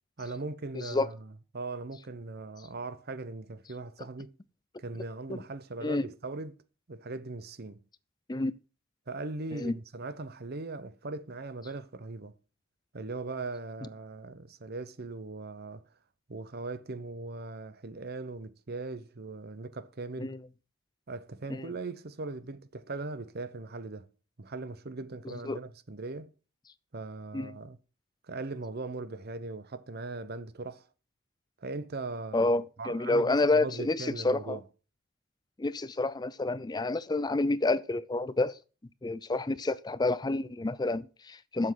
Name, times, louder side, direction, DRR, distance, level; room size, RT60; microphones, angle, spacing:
voice 1, 0.2-4.3 4.8-6.6 6.9-7.8 9.1-12.3 12.9-15.8 16.3-20.4 21.1-24.1 24.4-26.3 26.9-27.8 28.3-30.8 31.6-32.5 32.8-34.6, right 3 dB, 45° right, 0.8 m, -39 dB
voice 2, 0.7-1.1 5.3-5.4 5.8-6.0 8.3-8.5 9.5-9.7 20.2-20.4 21.5-21.7 25.4-25.6 27.3-27.6 32.3-34.6 35.6-38.6 39.0-41.7, left 2 dB, 20° left, 0.4 m, -29 dB
7.5 x 6.2 x 7.8 m
head